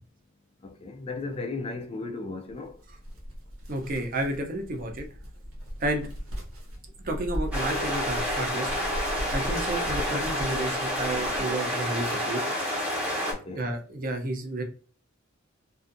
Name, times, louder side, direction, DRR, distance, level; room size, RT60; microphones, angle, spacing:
voice 1, 0.6-2.8 13.3-13.7, left 3 dB, 25° left, 0.4 m, -36 dB
sound 1, 2.5-11.8, equal, 85° right, 0.9 m, -38 dB
voice 2, 3.7-5.1 5.8-6.1 7.0-8.7 9.3-12.4 13.5-14.6, right 1 dB, 40° right, 0.5 m, -31 dB
sound 2, 7.5-13.3, equal, 5° right, 0.9 m, -29 dB
2.5 x 2.4 x 2.5 m
head